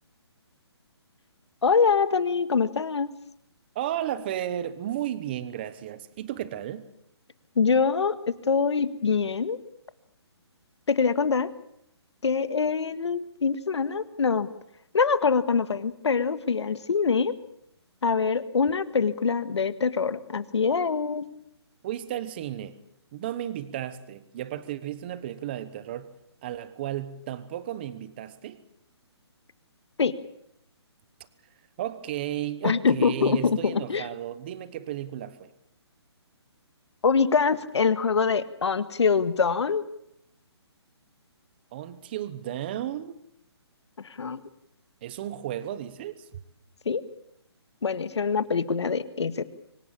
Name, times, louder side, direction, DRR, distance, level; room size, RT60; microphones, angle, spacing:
voice 1, 1.6-3.1 7.6-9.6 10.9-11.5 12.2-14.5 14.9-17.3 18.0-21.3 30.0-30.2 32.6-34.1 37.0-39.8 44.0-44.4 46.9-47.0 47.8-49.4, left 5 dB, 75° left, 1.7 m, -24 dB
voice 2, 3.7-6.9 21.8-22.8 23.1-26.1 26.4-28.6 31.8-35.5 41.7-43.2 45.0-46.3, right 11 dB, 20° right, 1.0 m, -34 dB
24.5 x 18.5 x 8.7 m
hypercardioid pair, 170°, 14 cm